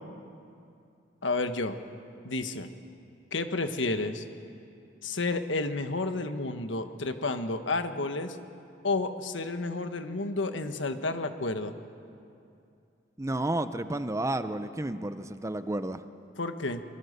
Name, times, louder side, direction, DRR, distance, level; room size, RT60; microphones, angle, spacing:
voice 1, 1.2-1.8 2.2-2.7 3.3-4.2 5.0-8.4 8.8-11.7 16.4-16.8, left 3 dB, 80° left, 8 dB, 1.4 m, -31 dB
voice 2, 13.2-16.1, right 1 dB, 15° right, 11 dB, 0.7 m, -31 dB
25.0 x 23.0 x 6.8 m, 2.5 s
head